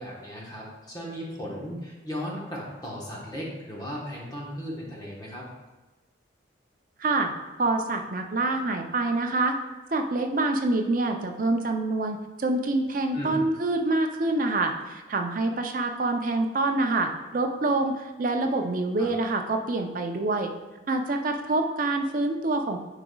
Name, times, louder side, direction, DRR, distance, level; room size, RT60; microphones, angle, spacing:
voice 1, 0.0-5.5 13.1-13.4 19.0-19.1, equal, 20° left, -3 dB, 1.1 m, -36 dB
voice 2, 7.0-7.3 7.6-9.5 9.9-20.5 20.9-22.8, right 2 dB, 45° right, 4 dB, 0.5 m, -26 dB
8.8 x 4.9 x 2.3 m, 1.1 s
head